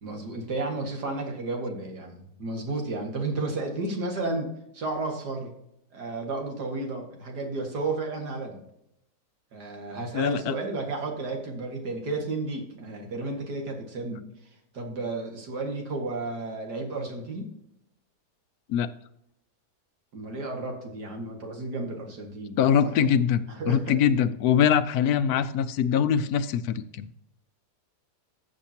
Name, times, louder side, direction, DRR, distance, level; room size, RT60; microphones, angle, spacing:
voice 1, 0.0-4.5 4.7-5.5 5.9-8.6 9.5-14.2 14.7-17.5 20.1-22.6 23.5-23.9, right 3 dB, 80° right, 2 dB, 2.5 m, -32 dB
voice 2, 10.1-10.6 18.7-18.9 22.6-27.1, left 8 dB, 75° left, 13 dB, 1.1 m, -23 dB
13.5 x 7.3 x 2.9 m, 0.78 s
omnidirectional pair, 1.7 m